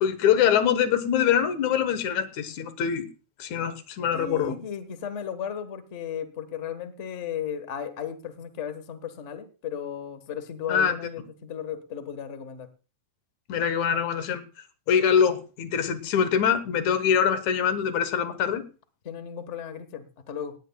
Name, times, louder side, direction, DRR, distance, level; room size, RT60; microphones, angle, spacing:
voice 1, 0.0-3.1 3.4-4.6 10.7-10.9 13.5-14.4 14.9-18.6, left 8 dB, 75° left, 11 dB, 2.5 m, -24 dB
voice 2, 4.1-12.7 19.0-20.5, left 8 dB, 45° left, 10 dB, 0.9 m, -35 dB
18.5 x 15.0 x 2.3 m, 0.34 s
omnidirectional pair, 3.4 m